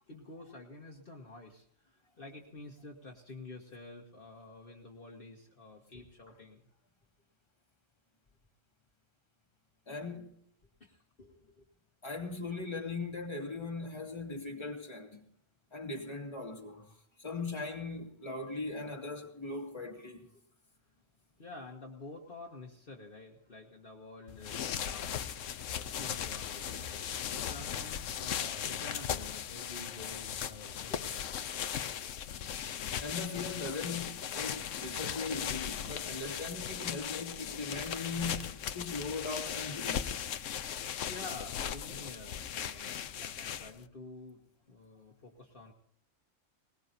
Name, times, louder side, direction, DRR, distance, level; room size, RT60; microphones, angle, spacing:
voice 1, 0.1-6.6 10.8-11.6 21.4-25.3 25.6-31.5 40.8-44.4 44.7-45.7, left 2 dB, 45° left, 1.7 m, -49 dB
voice 2, 9.9-10.3 12.0-15.2 15.7-20.3 31.8-32.2 32.5-32.7 33.0-40.2, left 3 dB, 20° left, 2.2 m, -39 dB
sound 1, 24.3-43.9, left 9 dB, 80° left, 1.1 m, -38 dB
21.0 x 20.0 x 2.7 m
omnidirectional pair, 1.3 m